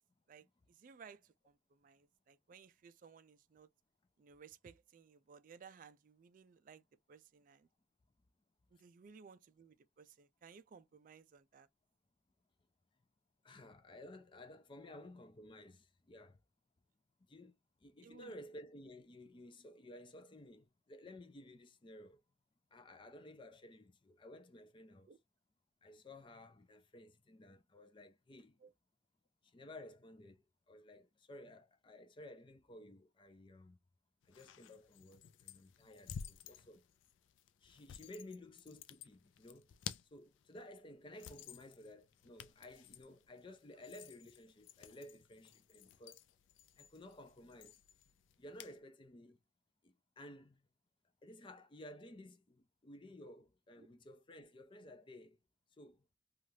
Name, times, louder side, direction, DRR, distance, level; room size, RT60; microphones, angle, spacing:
voice 1, 0.3-3.7 4.2-7.7 8.7-11.7 18.0-18.3 25.1-25.2 28.6-28.7 53.8-53.9, right 6 dB, 45° right, 0.3 m, -59 dB
voice 2, 13.4-16.4 17.3-22.2 22.7-25.1 25.8-28.6 29.4-33.8 34.2-36.8 37.6-39.8 40.1-46.2 46.8-47.8 48.4-49.4 49.8-50.6 51.2-55.4 55.8-56.1, left 1 dB, 25° left, 0.4 m, -55 dB
sound 1, 34.2-48.8, left 8 dB, 90° left, 0.3 m, -54 dB
3.2 x 2.4 x 2.7 m
head